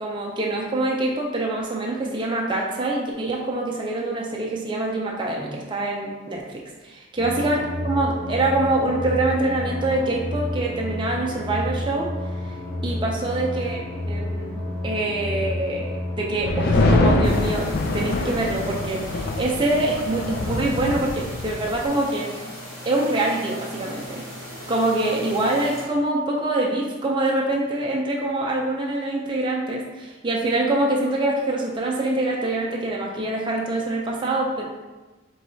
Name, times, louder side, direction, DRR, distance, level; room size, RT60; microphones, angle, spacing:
voice 1, 0.0-12.1 12.8-13.8 14.1-22.3 22.9-24.2 24.7-34.6, right 2 dB, 20° right, -2 dB, 0.4 m, -25 dB
sound 1, 7.2-16.6, left 1 dB, 35° left, 0.9 m, -30 dB
sound 2, 16.4-21.9, left 2 dB, 50° left, 0.4 m, -24 dB
sound 3, 17.2-25.8, equal, 15° left, 1.5 m, -38 dB
4.6 x 3.1 x 2.7 m, 1.2 s
head